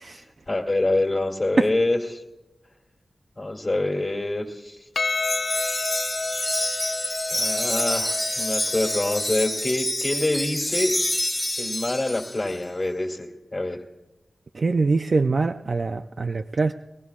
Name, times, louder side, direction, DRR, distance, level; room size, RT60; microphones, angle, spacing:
voice 1, 0.1-2.2 3.4-4.8 7.3-11.0 11.6-13.8, left 2 dB, 35° left, -2 dB, 1.8 m, -26 dB
Percussion, 5.0-9.6, left 4 dB, 70° left, 0.4 m, -31 dB
Wind chime, 5.1-12.6, left 1 dB, 15° left, 0.6 m, -27 dB
voice 2, 14.6-16.7, right 3 dB, 55° right, 7 dB, 0.4 m, -23 dB
22.0 x 17.0 x 2.4 m, 1.1 s
wide cardioid pair, 95°, 0 cm